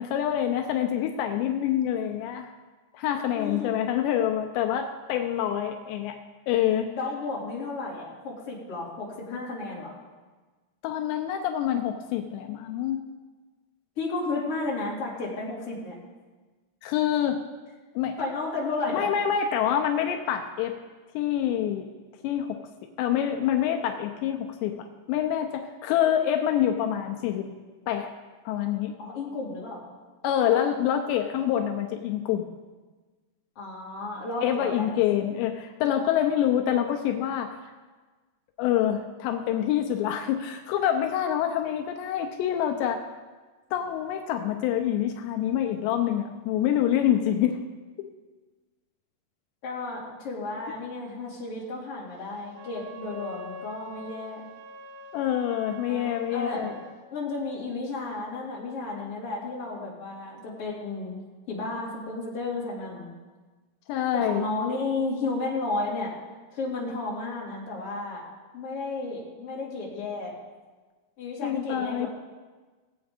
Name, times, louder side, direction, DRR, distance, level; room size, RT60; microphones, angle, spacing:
voice 1, 0.0-2.5 2.9-6.2 6.5-6.9 10.8-13.0 16.8-17.4 18.0-18.2 18.9-20.8 21.1-21.9 22.2-22.6 23.0-27.5 27.9-28.1 28.5-28.9 30.2-32.5 34.4-37.5 38.6-43.1 43.7-47.6 48.0-48.1 55.1-56.7 63.9-64.5 71.4-72.1, left 10 dB, 85° left, 4 dB, 2.8 m, -26 dB
voice 2, 3.3-3.7 6.9-10.0 14.0-15.9 18.2-19.1 29.0-29.8 33.6-34.9 49.6-54.5 55.9-56.7 57.1-61.2 61.5-63.1 64.1-66.1 66.5-68.2 68.5-70.3 71.2-72.1, left 3 dB, 35° left, -5 dB, 3.1 m, -33 dB
Wind instrument woodwind instrument, 52.5-57.0, left 1 dB, 75° right, 2.8 m, -44 dB
17.5 x 8.1 x 5.1 m, 1.3 s
omnidirectional pair, 5.1 m